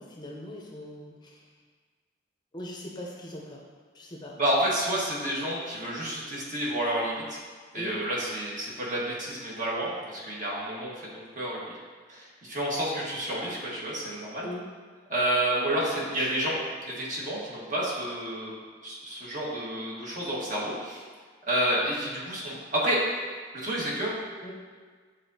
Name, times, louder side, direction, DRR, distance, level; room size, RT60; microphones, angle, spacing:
voice 1, 0.0-1.4 2.5-3.6 3.9-4.3 7.7-8.0 14.4-14.6 16.1-16.3 24.4-24.5, left 1 dB, 25° left, -2 dB, 0.7 m, -41 dB
voice 2, 4.4-7.4 7.7-10.9 11.3-11.6 12.1-14.5 15.1-16.6 16.8-18.5 18.8-21.0 21.5-23.0 23.6-24.2, right 1 dB, 45° right, -5 dB, 1.5 m, -29 dB
9.2 x 3.8 x 2.7 m, 1.5 s
head